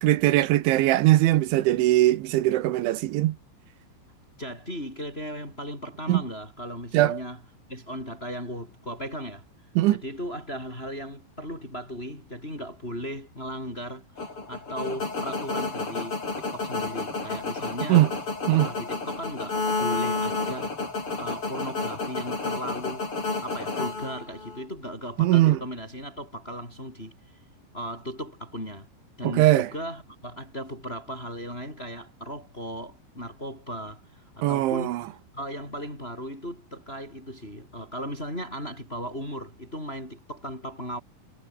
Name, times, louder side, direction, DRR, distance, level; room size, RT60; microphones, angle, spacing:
voice 1, 0.0-3.4 6.1-6.2 6.9-7.2 9.8-10.0 17.9-18.1 18.5-18.7 25.2-25.6 29.2-29.7 34.4-35.0, right 16 dB, 80° right, 3.4 m, -20 dB
voice 2, 4.4-7.4 7.7-9.4 9.9-18.0 18.5-20.8 21.2-23.1 23.4-27.1 27.7-28.9 29.2-41.0, equal, 10° left, 7.7 m, -37 dB
sound 1, 14.2-24.6, left 3 dB, 25° left, 6.5 m, -31 dB
omnidirectional pair, 5.6 m